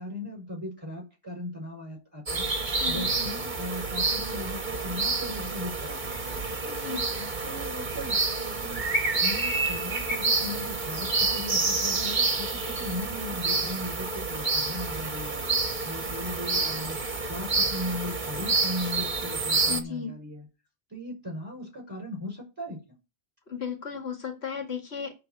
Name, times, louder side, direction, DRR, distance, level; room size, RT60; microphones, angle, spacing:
voice 1, 0.0-2.5 2.9-6.4 6.9-8.8 9.2-15.4 15.8-20.5 20.9-23.0, left 1 dB, 15° right, 0 dB, 6.0 m, -38 dB
sound 1, 2.3-19.8, right 3 dB, 45° right, 1.5 m, -28 dB
voice 2, 2.8-3.1 6.5-7.0 19.7-20.2 23.5-25.1, left 6 dB, 80° left, 4 dB, 2.3 m, -35 dB
11.5 x 4.1 x 7.8 m, 0.28 s
omnidirectional pair, 1.1 m